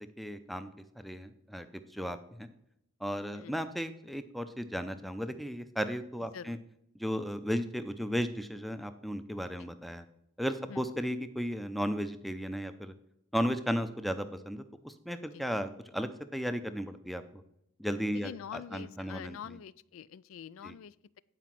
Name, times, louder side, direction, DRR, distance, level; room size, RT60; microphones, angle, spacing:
voice 1, 0.0-1.7 1.9-2.5 3.0-6.6 7.0-10.0 10.4-12.9 13.3-17.4 17.8-19.6 20.6-20.7, equal, ahead, 10 dB, 0.5 m, -35 dB
voice 2, 18.1-21.2, left 8 dB, 75° left, 20 dB, 0.3 m, -45 dB
9.3 x 5.0 x 5.9 m, 0.79 s
head